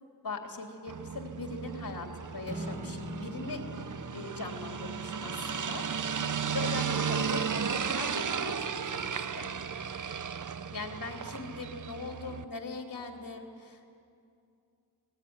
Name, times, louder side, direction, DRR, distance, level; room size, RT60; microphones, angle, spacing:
voice 1, 0.2-3.6 4.1-5.9 6.2-6.3 6.5-9.5 10.7-13.9, left 3 dB, 60° left, 3 dB, 3.1 m, -40 dB
sound 1, 0.9-12.4, right 7 dB, 50° right, 0.8 m, -35 dB
Strum, 2.5-8.7, left 1 dB, 20° right, 1.7 m, -46 dB
20.0 x 18.0 x 9.6 m, 2.5 s
wide cardioid pair, 85°, 39 cm